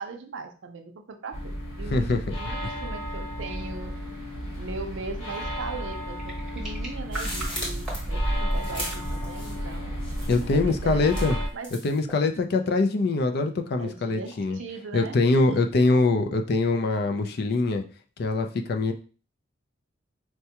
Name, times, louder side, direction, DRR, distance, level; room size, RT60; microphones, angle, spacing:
voice 1, 0.0-4.2 4.6-6.2 6.5-9.9 10.5-11.3 11.5-11.7 13.8-15.2 15.5-15.6, right 4 dB, 65° right, 5 dB, 0.5 m, -39 dB
sound 1, 1.3-11.5, equal, 80° left, 1.4 m, -33 dB
sound 2, 5.9-8.1 8.6-9.1 10.9-11.5 12.0-12.3 13.9-15.0, right 2 dB, ahead, 1.0 m, -42 dB
sound 3, 7.1-9.7 10.0-10.6 11.1-12.0, equal, 25° left, 0.9 m, -32 dB
voice 2, 10.3-11.4 11.8-14.6 14.9-17.8 18.2-18.9, left 3 dB, 50° left, 6 dB, 0.4 m, -23 dB
4.5 x 2.2 x 2.8 m, 0.38 s
head